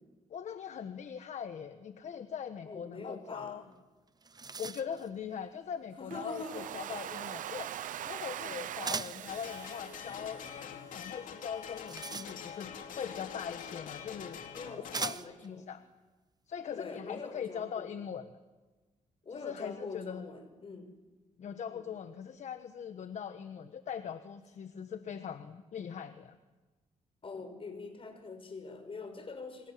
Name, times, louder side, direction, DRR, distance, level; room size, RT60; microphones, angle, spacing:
voice 1, 0.3-3.6 4.6-7.7 8.0-14.4 15.0-15.8 16.5-18.3 19.3-20.3 21.4-26.4, left 7 dB, 60° left, 9 dB, 1.4 m, -41 dB
voice 2, 2.7-3.7 6.0-6.9 8.4-8.6 14.5-15.7 16.8-17.9 19.2-20.9 21.7-21.9 27.2-29.7, left 3 dB, 40° left, 7 dB, 6.2 m, -44 dB
sound 1, 3.7-3.8 4.1-5.1 8.8-9.3 11.5-12.7 13.8-13.9 14.9-15.5, right 4 dB, 30° right, 0.9 m, -39 dB
Domestic sounds home sounds, 6.1-11.1, right 11 dB, 80° right, 0.9 m, -42 dB
sound 2, 9.3-15.2, left 8 dB, 85° left, 2.7 m, -45 dB
28.0 x 25.0 x 7.7 m, 1.2 s
cardioid pair, 85°, 13 cm